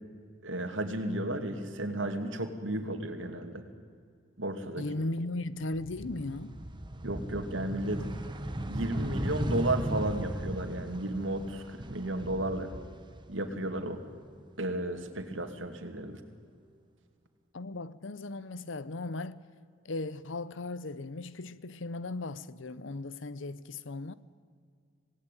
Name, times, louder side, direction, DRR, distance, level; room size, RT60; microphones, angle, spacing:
voice 1, 0.4-3.6 4.4-4.9 7.0-8.1 8.7-12.7 13.3-14.0 14.6-16.2, right 1 dB, 65° right, 2.6 m, -33 dB
voice 2, 4.8-6.6 17.5-19.4 19.8-24.1, left 2 dB, 65° left, 0.8 m, -37 dB
sound 1, 5.6-13.7 14.1-15.2, right 1 dB, 25° right, 1.4 m, -37 dB
26.5 x 18.5 x 9.2 m
head